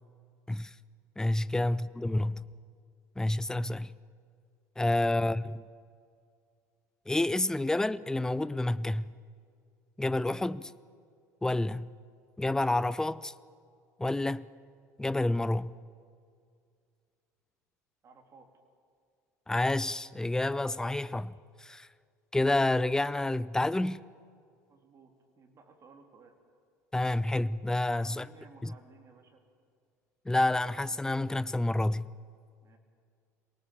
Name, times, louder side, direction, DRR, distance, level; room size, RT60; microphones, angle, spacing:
voice 1, 1.2-2.4 3.2-3.9 4.8-5.6 7.1-9.1 10.0-10.7 11.4-11.9 12.4-13.3 14.0-14.4 15.0-15.7 19.5-21.9 22.3-24.0 26.9-28.3 28.6-28.7 30.3-32.1, left 2 dB, 5° left, 0.6 m, -29 dB
voice 2, 18.0-18.5 24.7-26.3 27.9-29.4 32.6-32.8, right 4 dB, 35° right, 3.2 m, -57 dB
26.5 x 18.0 x 7.3 m
figure-of-eight pair, 65°, 9 cm